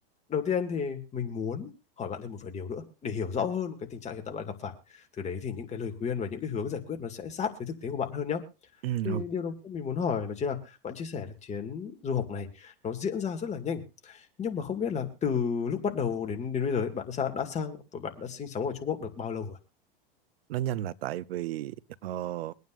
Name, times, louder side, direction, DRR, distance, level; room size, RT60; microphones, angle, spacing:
voice 1, 0.3-1.7 2.0-4.7 5.2-8.4 9.0-19.6, left 6 dB, 25° left, 2.2 m, -32 dB
voice 2, 8.8-9.3 20.5-21.8 22.0-22.5, right 12 dB, 80° right, 0.8 m, -32 dB
24.0 x 9.3 x 2.5 m
supercardioid pair, 125°, 30 cm